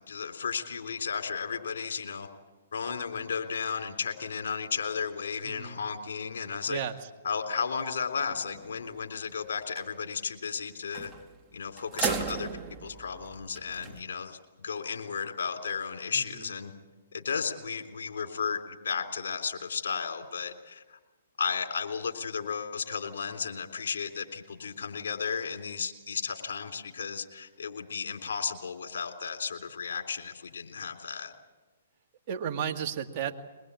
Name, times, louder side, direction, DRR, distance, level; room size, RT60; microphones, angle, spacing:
voice 1, 0.0-2.3 2.7-6.8 7.2-11.1 11.5-12.5 12.8-16.7 17.1-21.0 21.4-31.3, left 6 dB, 70° left, 5 dB, 3.6 m, -34 dB
voice 2, 5.4-5.8 6.7-7.0 16.1-16.4 32.3-33.3, right 8 dB, 40° right, 3 dB, 2.2 m, -33 dB
sound 1, 8.3-8.8 9.2-9.3 9.6-9.9 10.9-11.4 11.8-14.0, right 6 dB, 20° right, 1.9 m, -36 dB
22.5 x 21.0 x 8.5 m, 1.2 s
hypercardioid pair, 130°, 0 cm